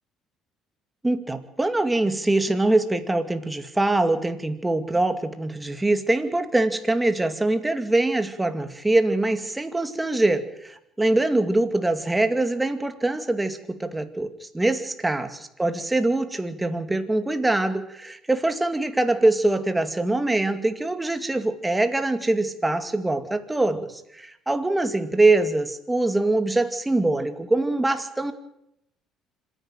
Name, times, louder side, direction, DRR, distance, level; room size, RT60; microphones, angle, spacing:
voice 1, 1.0-28.3, right 2 dB, 10° right, 8 dB, 2.4 m, -23 dB
26.0 x 11.0 x 9.2 m, 0.79 s
cardioid pair, 100°, 0 cm